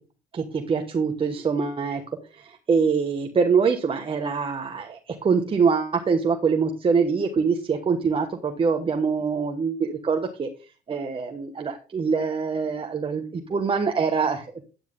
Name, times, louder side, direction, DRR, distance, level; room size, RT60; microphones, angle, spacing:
voice 1, 0.3-2.0 2.4-10.5 10.9-14.5, right 5 dB, 30° right, 4 dB, 1.2 m, -24 dB
10.0 x 9.0 x 3.7 m, 0.33 s
cardioid pair, 110°, 17 cm